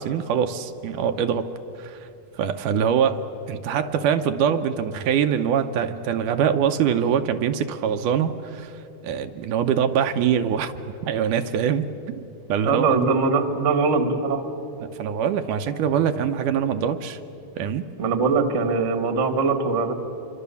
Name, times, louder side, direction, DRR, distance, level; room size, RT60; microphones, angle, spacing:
voice 1, 0.0-1.5 1.8-2.1 2.4-10.7 11.0-12.2 12.5-13.0 14.8-17.2 17.6-17.8, right 8 dB, 80° right, 7 dB, 2.3 m, -24 dB
voice 2, 12.6-14.4 18.0-19.9, right 4 dB, 30° right, 7 dB, 1.3 m, -21 dB
26.5 x 24.5 x 7.0 m, 2.9 s
omnidirectional pair, 3.7 m